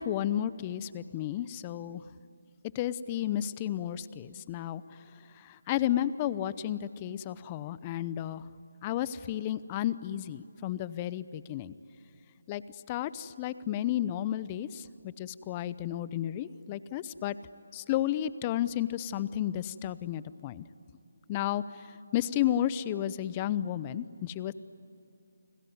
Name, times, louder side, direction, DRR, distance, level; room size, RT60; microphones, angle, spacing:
voice 1, 0.0-2.0 2.7-4.8 5.4-8.4 8.8-11.7 12.5-12.6 12.9-17.4 17.7-20.6 21.3-21.6 22.1-24.5, left 12 dB, 20° left, 16 dB, 0.7 m, -32 dB
30.0 x 20.5 x 9.5 m, 2.7 s
figure-of-eight pair, 160°, 0 cm